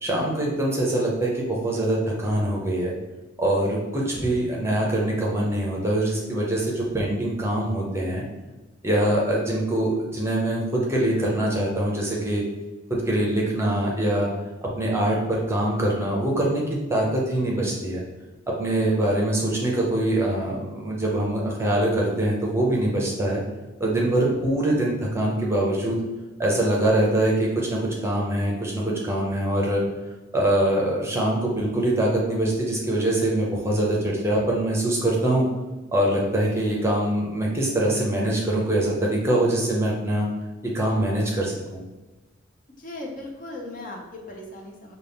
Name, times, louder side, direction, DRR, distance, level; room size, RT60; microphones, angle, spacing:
voice 1, 0.0-2.9 3.4-8.2 8.8-12.4 12.9-14.3 14.8-16.6 16.9-18.0 18.6-23.4 23.8-26.0 26.4-29.8 30.3-35.4 35.9-40.3 40.6-41.8, right 1 dB, 15° right, -3 dB, 0.7 m, -23 dB
voice 2, 42.8-45.0, left 2 dB, 40° left, 0 dB, 0.6 m, -37 dB
5.4 x 2.3 x 3.5 m, 1.1 s
head